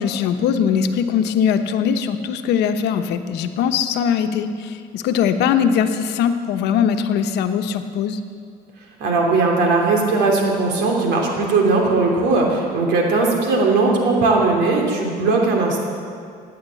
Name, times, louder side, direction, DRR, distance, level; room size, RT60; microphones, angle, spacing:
voice 1, 0.0-8.2, left 7 dB, 85° left, 8 dB, 1.0 m, -21 dB
voice 2, 9.0-15.8, right 3 dB, 85° right, 0 dB, 3.2 m, -18 dB
15.5 x 9.6 x 8.4 m, 2.3 s
cardioid pair, 110°, 17 cm